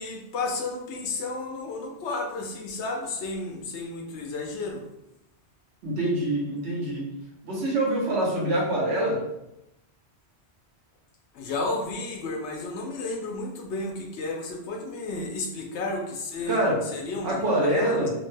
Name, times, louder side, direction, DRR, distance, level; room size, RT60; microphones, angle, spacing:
voice 1, 0.0-4.8 11.3-16.6 16.9-18.0, left 2 dB, 80° left, 1 dB, 0.9 m, -32 dB
voice 2, 5.8-7.0 7.4-9.2 16.5-16.8 17.2-18.1, right 1 dB, 75° right, -3 dB, 1.1 m, -25 dB
2.8 x 2.1 x 3.2 m, 0.88 s
omnidirectional pair, 1.1 m